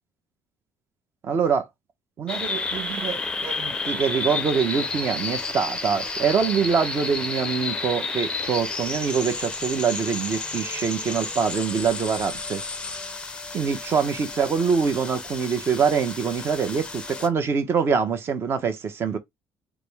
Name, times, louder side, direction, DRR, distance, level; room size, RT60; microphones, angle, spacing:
voice 1, 1.2-1.7 2.2-12.6 13.5-19.2, right 6 dB, 35° right, 0.8 m, -24 dB
sound 1, 2.3-17.3, left 3 dB, 15° left, 0.6 m, -31 dB
4.8 x 2.1 x 3.4 m
cardioid pair, 150°, 7 cm